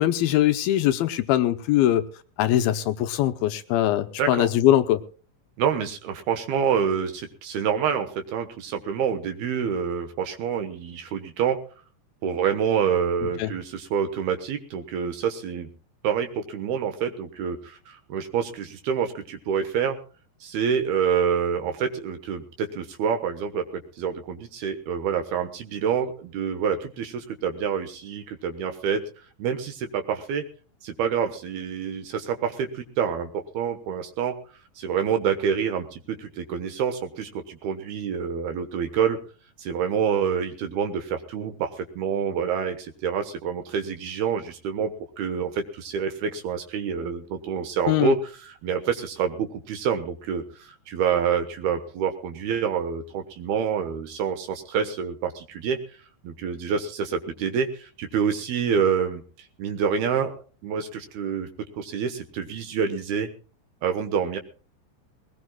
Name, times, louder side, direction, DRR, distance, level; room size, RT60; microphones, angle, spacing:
voice 1, 0.0-2.0 2.4-5.0 13.4-13.5 47.9-48.2, left 13 dB, 80° left, 9 dB, 2.3 m, -21 dB
voice 2, 4.2-4.5 5.6-11.6 12.2-15.7 16.0-20.0 20.4-29.0 29.4-30.4 30.8-34.4 34.8-39.2 39.6-44.9 45.2-55.8 56.2-60.4 60.6-63.3 63.8-64.4, right 7 dB, 70° right, 7 dB, 2.9 m, -27 dB
21.0 x 19.0 x 2.3 m, 0.40 s
omnidirectional pair, 5.0 m